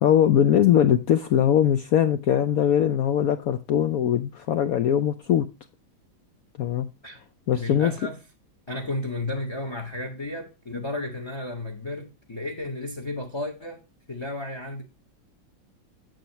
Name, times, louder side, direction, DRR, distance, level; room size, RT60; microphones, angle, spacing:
voice 1, 0.0-5.5 6.6-6.9 7.5-7.9, left 10 dB, 80° left, 0.8 m, -21 dB
voice 2, 7.5-8.2 8.7-13.8 14.1-14.8, left 2 dB, 20° left, 0.7 m, -33 dB
9.0 x 7.4 x 3.0 m
omnidirectional pair, 2.1 m